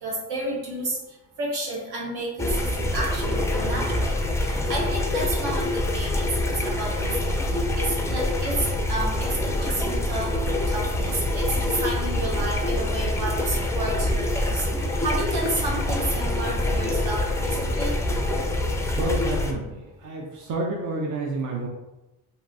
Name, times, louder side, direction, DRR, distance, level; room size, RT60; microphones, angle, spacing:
voice 1, 0.0-1.0 1.4-4.2 4.4-7.1 7.5-10.3 10.7-14.7 15.0-18.0, right 2 dB, 70° right, -2 dB, 1.1 m, -31 dB
sound 1, 2.4-19.5, left 1 dB, 10° left, 0.3 m, -25 dB
voice 2, 19.0-21.7, right 2 dB, 50° right, -2 dB, 0.6 m, -29 dB
2.9 x 2.6 x 2.5 m, 1.0 s
cardioid pair, 75°, 39 cm